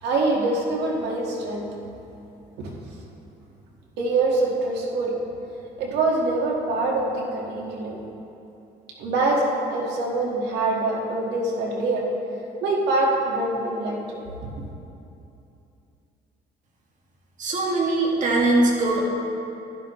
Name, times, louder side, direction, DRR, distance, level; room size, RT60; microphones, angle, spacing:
voice 1, 0.0-1.7 2.6-2.7 4.0-5.2 5.8-8.0 9.0-12.1 12.6-14.2, right 2 dB, 85° right, -2 dB, 1.9 m, -24 dB
voice 2, 17.4-19.1, right 2 dB, 50° right, -2 dB, 2.2 m, -21 dB
12.0 x 11.0 x 3.2 m, 2.8 s
cardioid pair, 110°, 17 cm